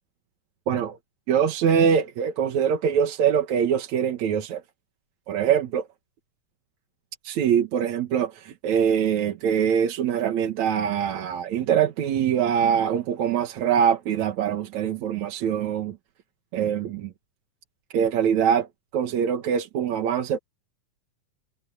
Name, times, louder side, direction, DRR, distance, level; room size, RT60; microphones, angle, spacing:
voice 1, 0.7-1.0 1.3-4.6 5.3-5.8 7.2-16.0 16.5-17.1 17.9-18.7 18.9-20.4, right 8 dB, 70° right, 2.7 m, -23 dB
omnidirectional pair, 3.5 m